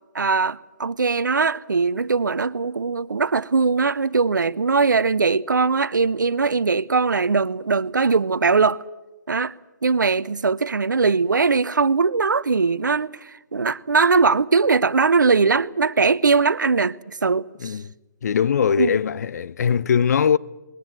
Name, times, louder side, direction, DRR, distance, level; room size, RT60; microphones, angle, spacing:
voice 1, 0.1-8.8 9.3-9.6 9.8-17.8 18.8-19.0, right 4 dB, 80° right, 0.7 m, -20 dB
voice 2, 17.6-17.9 18.2-20.4, left 7 dB, 60° left, 0.7 m, -21 dB
20.5 x 19.5 x 9.1 m
figure-of-eight pair, 135°, 10 cm